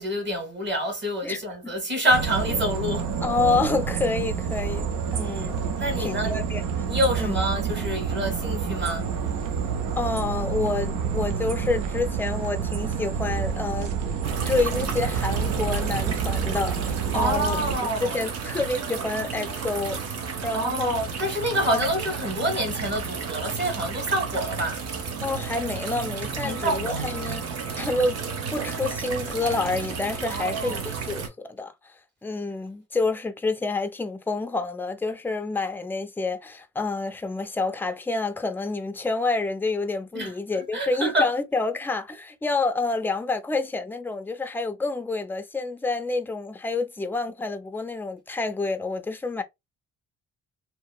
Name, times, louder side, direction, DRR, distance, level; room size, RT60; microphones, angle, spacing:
voice 1, 0.0-3.1 5.2-5.5 5.8-6.4 6.9-9.1 17.1-18.3 20.5-24.8 26.4-27.1 30.3-30.8 40.1-41.3, equal, 35° right, 1.2 m, -27 dB
voice 2, 1.2-1.7 3.2-5.6 6.0-6.8 7.2-7.3 10.0-13.9 14.4-20.0 20.4-21.0 21.7-21.9 25.2-27.5 27.7-28.2 28.5-31.9 32.2-49.4, left 3 dB, 5° left, 0.4 m, -28 dB
sound 1, 2.1-17.8, right 7 dB, 85° right, 0.6 m, -28 dB
sound 2, 14.2-31.3, right 5 dB, 55° right, 0.8 m, -32 dB
2.8 x 2.2 x 2.2 m
cardioid pair, 90°, 30 cm